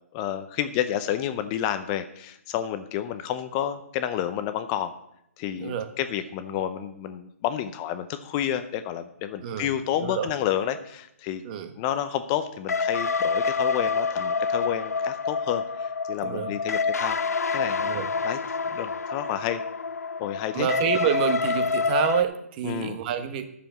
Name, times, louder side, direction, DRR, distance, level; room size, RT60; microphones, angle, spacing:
voice 1, 0.1-4.9 5.4-11.4 11.8-17.2 17.5-17.9 18.2-18.4 18.7-19.6 20.2-20.7 22.6-23.0, left 10 dB, 25° left, 10 dB, 0.7 m, -30 dB
voice 2, 5.6-5.9 9.4-9.7 10.0-10.3 11.4-11.7 16.2-16.5 17.8-18.1 20.5-23.5, right 9 dB, 35° right, 9 dB, 1.2 m, -28 dB
sound 1, 12.7-22.2, left 5 dB, 80° left, 0.5 m, -27 dB
10.5 x 7.0 x 7.4 m, 0.77 s
hypercardioid pair, 145°, 8 cm